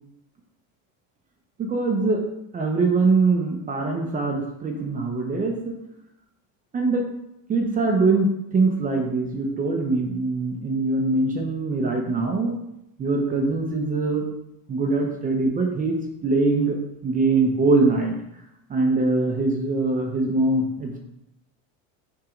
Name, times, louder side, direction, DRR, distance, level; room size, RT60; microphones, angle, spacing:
voice 1, 1.6-2.2 2.5-5.7 6.7-7.1 7.5-12.6 13.0-14.2 14.7-16.8 17.0-18.1 18.7-21.0, right 3 dB, 20° right, 2 dB, 0.7 m, -23 dB
5.9 x 3.6 x 5.1 m, 0.82 s
supercardioid pair, 150°, 42 cm